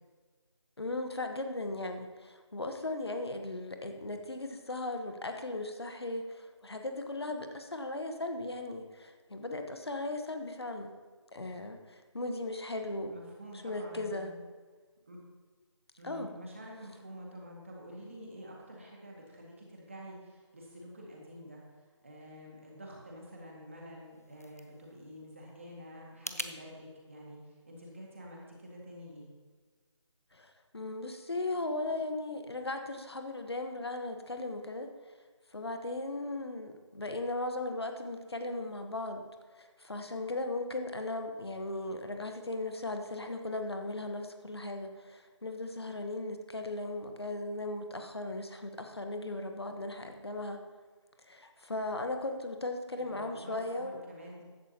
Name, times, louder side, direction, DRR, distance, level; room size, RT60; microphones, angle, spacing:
voice 1, 0.8-10.9 11.3-13.1 13.6-14.3 16.0-16.3 30.3-34.9 35.5-39.2 39.6-50.6 51.2-54.0, left 2 dB, 55° left, 5 dB, 1.2 m, -37 dB
voice 2, 13.1-14.4 15.1-15.2 16.0-29.3 53.0-54.4, equal, 25° right, -3 dB, 2.0 m, -48 dB
sound 1, 23.9-26.6, left 1 dB, 30° left, 0.5 m, -44 dB
15.0 x 11.0 x 2.9 m, 1.5 s
figure-of-eight pair, 180°, 16 cm